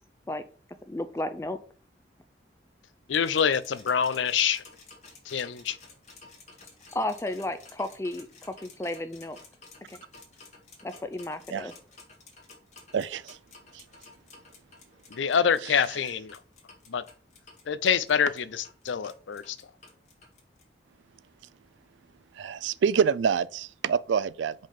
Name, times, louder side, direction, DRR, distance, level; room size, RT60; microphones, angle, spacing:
voice 1, 0.9-1.6 6.9-9.4 9.9-10.0 10.8-11.7, left 1 dB, 15° left, 0.4 m, -33 dB
voice 2, 3.1-4.6 5.3-5.8 15.1-16.4 16.9-17.0 17.7-19.6, left 7 dB, 90° left, 0.5 m, -26 dB
sound 1, 3.1-20.6, left 3 dB, 40° left, 1.4 m, -52 dB
voice 3, 12.9-13.4 13.7-13.8 15.6-15.8 22.3-24.5, right 7 dB, 80° right, 0.4 m, -27 dB
5.1 x 3.7 x 5.6 m
head